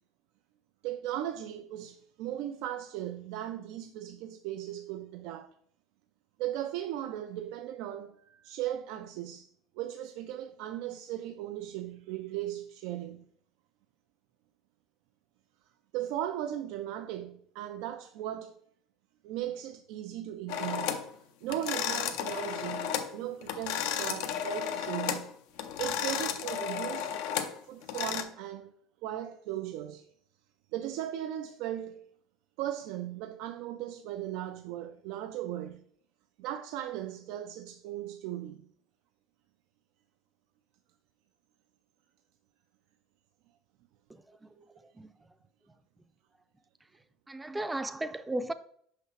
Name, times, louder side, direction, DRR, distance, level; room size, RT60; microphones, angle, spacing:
voice 1, 0.8-5.5 6.4-9.5 9.7-13.3 15.9-18.6 19.2-21.1 21.4-25.3 25.6-27.1 27.7-28.7 29.0-30.1 30.7-32.1 32.6-35.8 36.4-38.6 44.5-44.6, right 12 dB, 75° right, 0.4 m, -37 dB
sound 1, 20.5-21.1 21.5-23.1 23.4-25.3 25.6-28.2, left 9 dB, 80° left, 0.6 m, -33 dB
voice 2, 47.3-48.5, right 1 dB, 10° right, 0.5 m, -34 dB
5.8 x 5.6 x 3.3 m
supercardioid pair, 100°, 0 cm